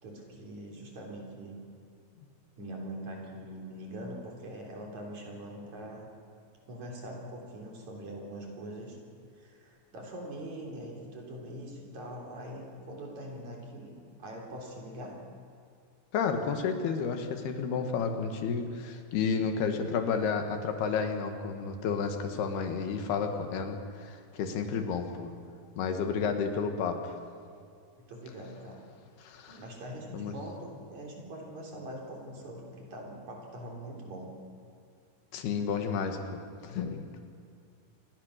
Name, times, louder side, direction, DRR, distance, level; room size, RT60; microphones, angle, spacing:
voice 1, 0.0-1.6 2.6-6.1 6.7-9.0 9.4-15.1 28.0-29.1 29.5-34.3, right 1 dB, 50° right, -1 dB, 4.8 m, -43 dB
voice 2, 16.1-25.3 25.8-27.2 29.2-29.6 30.1-30.3 35.3-37.1, left 5 dB, 90° left, 6 dB, 3.7 m, -31 dB
27.5 x 20.0 x 6.6 m, 2.4 s
omnidirectional pair, 4.4 m